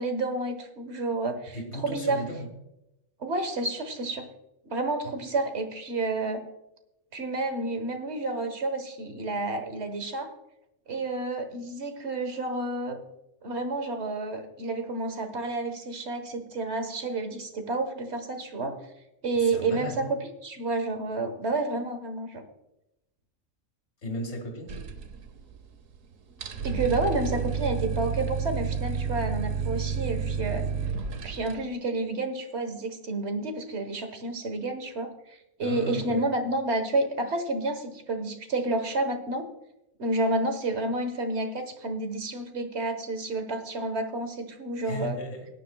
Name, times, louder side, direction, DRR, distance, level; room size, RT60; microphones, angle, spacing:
voice 1, 0.0-2.3 3.2-4.3 4.7-6.4 7.1-10.3 10.9-13.0 13.4-18.8 19.2-22.4 26.6-30.7 31.2-39.5 40.0-45.2, right 2 dB, 60° right, 8 dB, 1.5 m, -30 dB
voice 2, 1.5-2.5 19.3-20.1 24.0-24.7 35.6-36.3 44.8-45.5, left 1 dB, 60° left, 2 dB, 2.3 m, -35 dB
sound 1, 24.7-25.7 25.9-26.0 26.3-31.5, right 6 dB, 90° right, 1.4 m, -30 dB
18.0 x 10.5 x 2.3 m, 0.88 s
omnidirectional pair, 1.3 m